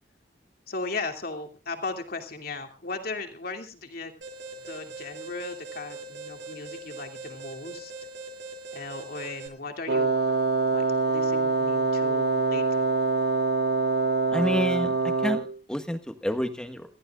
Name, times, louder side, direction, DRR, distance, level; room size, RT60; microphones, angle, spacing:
voice 1, 0.7-4.1 4.7-7.9 8.7-10.2 10.7-12.9, left 3 dB, 55° left, 5 dB, 2.6 m, -37 dB
Alarm, 4.2-9.5, right 2 dB, 85° right, 7.8 m, -41 dB
Wind instrument woodwind instrument, 9.9-15.6, right 3 dB, 65° right, 1.0 m, -24 dB
voice 2, 14.3-17.0, equal, 5° left, 7 dB, 1.6 m, -29 dB
28.0 x 14.5 x 2.4 m, 0.29 s
head